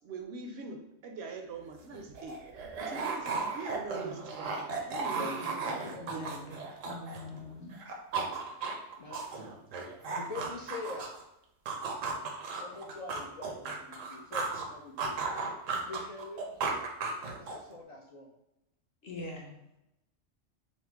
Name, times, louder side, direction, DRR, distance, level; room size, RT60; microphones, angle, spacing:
voice 1, 0.0-2.4 2.8-6.5, right 3 dB, 65° right, 4 dB, 0.7 m, -43 dB
sound 1, 1.6-7.4 7.7-11.2 11.7-14.7 15.0-17.7, right 4 dB, 85° right, 1.0 m, -35 dB
voice 2, 5.1-6.2 9.0-9.2 10.1-11.1 12.6-15.2 15.9-16.9 17.4-18.3, left 3 dB, 75° left, -2 dB, 0.3 m, -44 dB
voice 3, 6.0-6.6 6.8-7.7 8.3-8.7 19.0-19.5, left 2 dB, 55° left, -2 dB, 1.1 m, -44 dB
4.2 x 2.0 x 4.5 m, 0.87 s
omnidirectional pair, 1.3 m